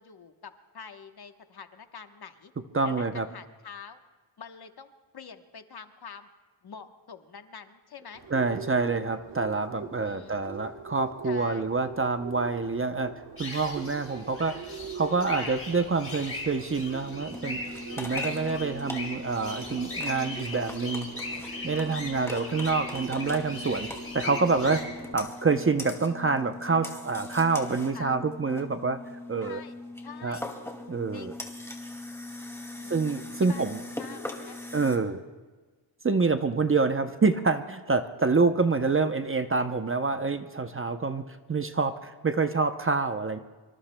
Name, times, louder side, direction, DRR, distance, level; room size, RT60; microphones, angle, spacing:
voice 1, 0.0-2.5 2.8-4.0 4.4-6.3 6.6-8.2 10.0-10.4 11.2-11.7 15.3-15.6 17.0-17.4 27.9-28.2 29.4-29.8 30.0-30.5 31.1-31.4 32.7-33.0 33.4-34.6, left 6 dB, 50° left, 7 dB, 1.1 m, -46 dB
voice 2, 2.7-3.3 8.3-13.1 13.4-14.7 15.0-17.6 18.0-21.1 21.6-24.9 25.1-29.0 29.3-29.6 30.2-30.4 30.9-31.3 32.9-33.8 34.7-35.2 36.0-43.4, right 4 dB, 25° right, 8 dB, 0.7 m, -27 dB
Bird, 8.1-25.1, right 6 dB, 60° right, 1.7 m, -44 dB
sound 1, 13.4-24.8, left 2 dB, 25° left, 5.9 m, -39 dB
sound 2, 17.3-35.0, left 2 dB, 5° left, 2.2 m, -40 dB
25.5 x 25.0 x 2.2 m, 1.3 s
wide cardioid pair, 90°, 48 cm